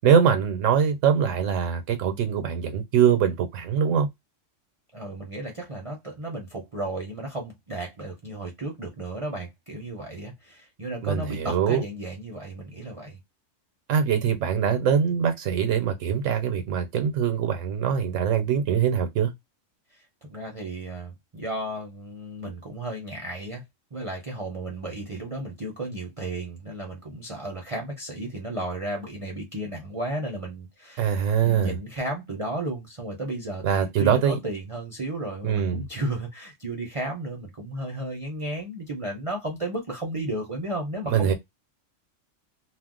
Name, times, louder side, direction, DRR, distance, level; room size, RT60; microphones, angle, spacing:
voice 1, 0.0-4.1 11.0-11.8 13.9-19.3 31.0-31.7 33.6-34.4 35.4-35.8 41.1-41.3, right 7 dB, 80° right, 1.0 m, -23 dB
voice 2, 4.9-13.2 19.9-20.0 20.3-23.6 23.9-41.3, right 1 dB, 35° right, 0.5 m, -34 dB
2.5 x 2.1 x 3.6 m
omnidirectional pair, 1.3 m